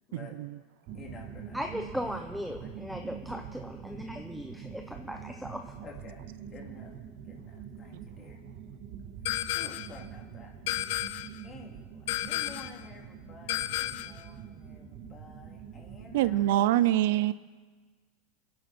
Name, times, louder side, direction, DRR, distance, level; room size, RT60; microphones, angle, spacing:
voice 1, 0.9-1.6 2.6-3.6 5.8-6.2 6.5-6.9 7.2-8.4 9.3-10.5 10.9-11.1 11.4-17.3, left 3 dB, 20° left, 0 dB, 2.7 m, -51 dB
sound 1, 0.9-16.6, right 8 dB, 40° right, 1.6 m, -45 dB
voice 2, 1.5-5.7, equal, ahead, 4 dB, 0.6 m, -37 dB
sound 2, 9.3-10.0 10.7-11.4 12.1-12.8 13.5-14.2, left 15 dB, 65° left, 0.5 m, -32 dB
voice 3, 16.1-17.3, right 14 dB, 65° right, 17 dB, 0.4 m, -24 dB
26.0 x 10.5 x 4.3 m, 1.4 s
supercardioid pair, 165°, 0 cm